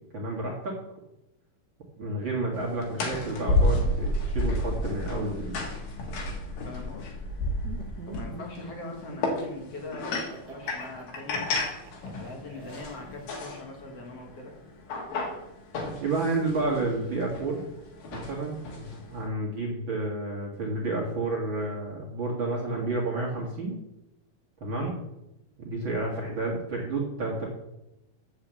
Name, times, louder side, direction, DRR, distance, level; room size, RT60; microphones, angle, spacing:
voice 1, 0.1-0.8 2.0-5.6 16.0-17.6 18.1-23.8 24.6-24.9 25.6-27.5, right 2 dB, 45° right, -2 dB, 2.0 m, -30 dB
sound 1, 2.5-19.3, left 2 dB, 90° left, 3.4 m, -32 dB
voice 2, 6.6-7.1 8.1-11.5 12.1-14.5 24.7-25.0, left 3 dB, 55° left, 0 dB, 2.3 m, -42 dB
Laughter, 7.6-13.6, right 5 dB, 80° right, 0.9 m, -45 dB
7.6 x 6.7 x 7.4 m, 0.88 s
omnidirectional pair, 3.8 m